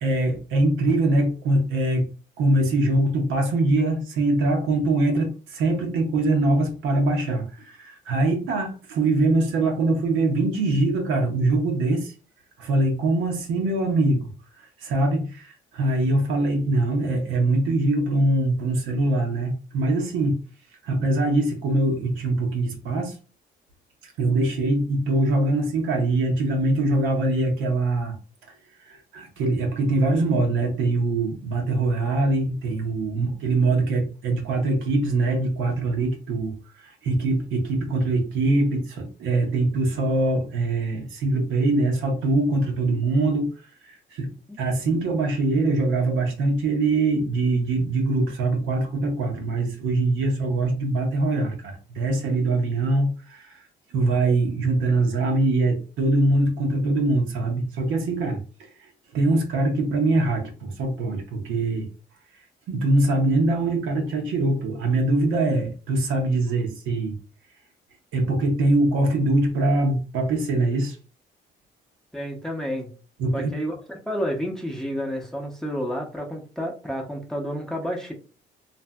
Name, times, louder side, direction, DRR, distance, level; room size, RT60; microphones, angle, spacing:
voice 1, 0.0-2.1 2.4-12.1 12.6-20.4 20.8-23.2 24.0-28.1 28.8-44.3 44.6-53.6 53.9-61.9 62.7-67.2 68.1-71.0 73.2-73.5, right 2 dB, 90° right, 2 dB, 0.7 m, -23 dB
voice 2, 72.1-72.9 73.3-78.1, equal, 5° left, 0 dB, 0.6 m, -30 dB
2.6 x 2.5 x 2.2 m, 0.37 s
cardioid pair, 90°, 20 cm